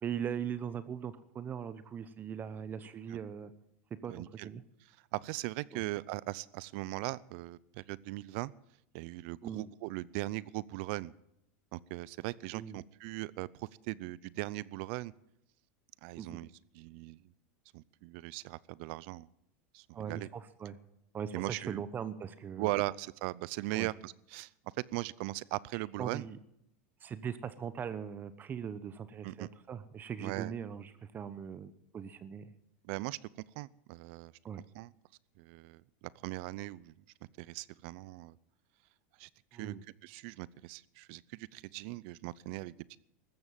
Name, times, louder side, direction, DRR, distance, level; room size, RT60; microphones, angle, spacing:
voice 1, 0.0-3.5 4.0-4.6 5.7-5.8 9.4-9.7 12.5-12.8 16.2-16.4 19.9-20.8 21.1-22.7 23.7-23.9 25.7-26.4 27.0-32.5 34.4-34.6 39.5-39.8, right 8 dB, 25° right, 14 dB, 1.0 m, -40 dB
voice 2, 4.1-4.5 5.1-8.5 8.9-11.1 11.7-15.1 16.0-17.2 17.7-19.3 19.7-20.3 21.3-21.8 22.6-24.5 24.9-26.3 29.2-29.5 30.2-30.5 32.8-33.2 33.6-34.3 34.7-34.9 35.4-35.8 36.2-36.9 37.4-38.4 39.2-39.7 40.0-43.0, right 20 dB, 60° right, 22 dB, 0.6 m, -39 dB
15.0 x 12.5 x 7.5 m, 0.78 s
supercardioid pair, 130°, 7 cm